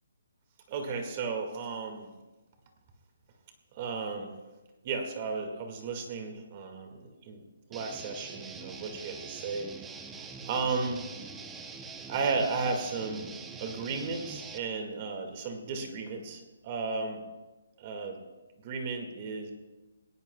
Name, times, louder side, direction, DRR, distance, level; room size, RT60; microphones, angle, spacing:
voice 1, 0.7-2.1 3.7-4.4 4.8-7.4 7.7-10.0 10.4-11.0 12.1-13.3 13.6-17.2 17.8-18.2 18.6-19.5, right 4 dB, 30° right, 4 dB, 2.0 m, -34 dB
Guitar, 7.7-14.6, right 5 dB, 10° right, 0.7 m, -44 dB
20.0 x 18.5 x 2.3 m, 1.2 s
hypercardioid pair, 165°, 0 cm